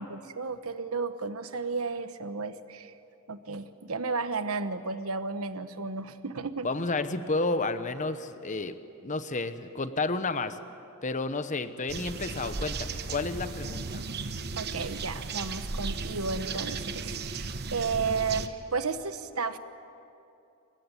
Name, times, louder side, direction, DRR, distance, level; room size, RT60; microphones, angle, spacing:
voice 1, 0.0-2.9 3.3-6.7 14.6-19.6, right 4 dB, 75° right, 11 dB, 1.2 m, -33 dB
voice 2, 6.6-8.8 9.0-10.6 11.0-14.0, left 3 dB, 35° left, 11 dB, 1.0 m, -31 dB
sound 1, 11.9-18.5, right 4 dB, 50° right, 1.1 m, -35 dB
28.5 x 15.5 x 9.8 m, 2.7 s
head